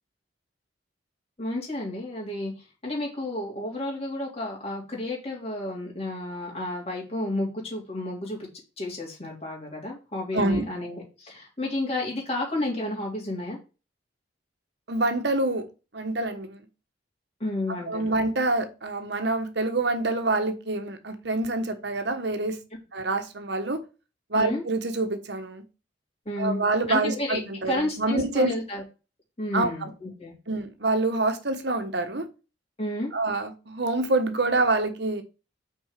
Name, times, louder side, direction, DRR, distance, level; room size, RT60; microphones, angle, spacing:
voice 1, 1.4-2.5 2.8-8.5 8.8-13.6 17.4-18.1 24.3-24.6 26.2-26.6 26.9-28.8 29.4-30.3 32.8-33.1, left 1 dB, 30° left, 3.3 m, -31 dB
voice 2, 10.3-10.6 14.9-15.7 15.9-16.6 17.9-22.6 22.9-23.8 24.3-25.6 26.4-28.5 29.5-29.9 30.5-32.3 33.1-35.2, right 2 dB, 60° right, 1.3 m, -26 dB
6.2 x 4.7 x 6.7 m
head